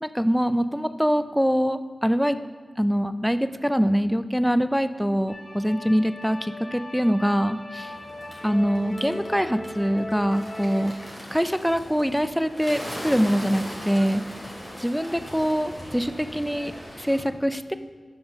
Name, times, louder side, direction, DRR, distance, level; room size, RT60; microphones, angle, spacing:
voice 1, 0.0-2.4 2.8-7.9 8.4-10.9 11.3-14.4 14.8-16.7 17.0-17.7, equal, ahead, 11 dB, 0.4 m, -24 dB
sound 1, 5.3-10.9, left 1 dB, 75° left, 2.6 m, -38 dB
Bird, 7.8-17.2, equal, 20° left, 2.9 m, -39 dB
7.4 x 5.8 x 6.5 m, 1.5 s
cardioid pair, 50°, 0 cm